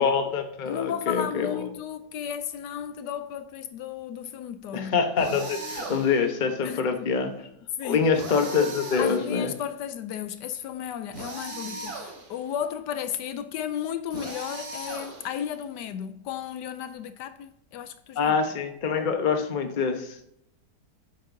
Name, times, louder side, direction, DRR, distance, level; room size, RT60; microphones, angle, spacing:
voice 1, 0.0-1.7 4.7-7.5 7.8-9.5 18.2-20.2, left 5 dB, 35° left, 0.9 m, -25 dB
voice 2, 0.6-5.0 6.6-7.1 7.8-8.1 9.0-18.3, left 9 dB, 80° left, 1.2 m, -34 dB
sound 1, 5.2-6.3 8.1-9.6 11.1-12.4 14.1-15.5, right 2 dB, 60° right, 2.2 m, -38 dB
9.5 x 7.3 x 2.7 m
omnidirectional pair, 1.9 m